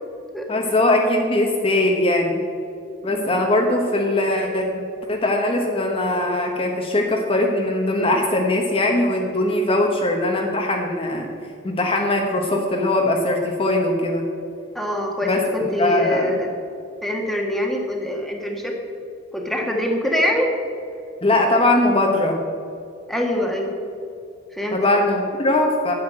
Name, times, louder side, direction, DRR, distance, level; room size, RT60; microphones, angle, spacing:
voice 1, 0.5-2.4 3.0-4.8 5.1-11.3 11.6-14.3 15.2-16.4 21.2-22.4 24.7-25.9, left 1 dB, 30° left, 1 dB, 1.1 m, -20 dB
voice 2, 3.1-3.4 14.7-16.5 17.0-18.7 19.3-20.5 23.1-23.7 24.5-24.8, left 1 dB, ahead, 0 dB, 1.5 m, -24 dB
9.8 x 7.4 x 8.8 m, 2.4 s
head